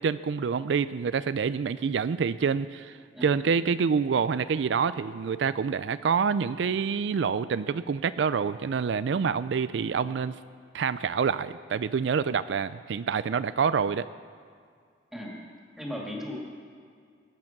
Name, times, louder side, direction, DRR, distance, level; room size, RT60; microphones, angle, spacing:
voice 1, 0.0-10.3 10.7-14.1, right 6 dB, 80° right, 14 dB, 0.4 m, -27 dB
voice 2, 15.8-16.4, left 1 dB, ahead, -3 dB, 2.4 m, -37 dB
21.0 x 8.5 x 6.0 m, 2.1 s
head